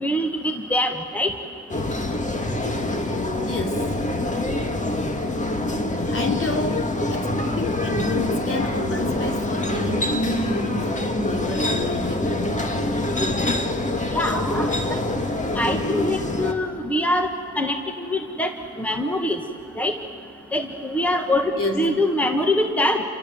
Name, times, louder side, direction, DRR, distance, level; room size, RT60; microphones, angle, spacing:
voice 1, 0.0-1.3 14.1-15.0 15.5-17.3 17.5-18.5 18.8-19.4 19.8-19.9 20.5-23.0, left 1 dB, 5° left, 5 dB, 1.7 m, -24 dB
sound 1, 1.7-16.5, left 1 dB, 25° left, 2.1 m, -25 dB
voice 2, 3.4-3.9 6.1-12.6 21.6-22.0, left 2 dB, 45° left, 3 dB, 3.6 m, -29 dB
29.5 x 24.5 x 8.0 m, 2.6 s
cardioid pair, 90°, 30 cm